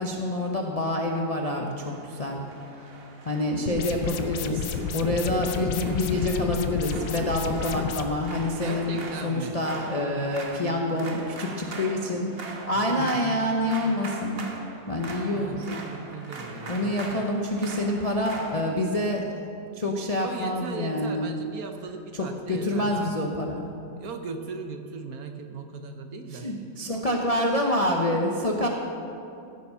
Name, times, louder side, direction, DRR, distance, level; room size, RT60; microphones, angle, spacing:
voice 1, 0.0-2.4 2.7-2.9 3.2-9.0 9.2-12.4 12.7-14.5 14.9-15.7 16.7-19.3 19.7-21.3 22.1-23.7 26.3-28.7, left 1 dB, 35° left, 0 dB, 0.5 m, -27 dB
sound 1, 1.9-18.7, right 2 dB, 40° right, 1.1 m, -42 dB
sound 2, 3.7-8.0, left 6 dB, 80° left, 1.3 m, -31 dB
voice 2, 8.6-9.9 12.9-13.4 15.3-17.3 20.2-23.1 24.0-26.5, right 5 dB, 65° right, 6 dB, 1.1 m, -38 dB
15.5 x 7.1 x 5.5 m, 2.7 s
omnidirectional pair, 1.9 m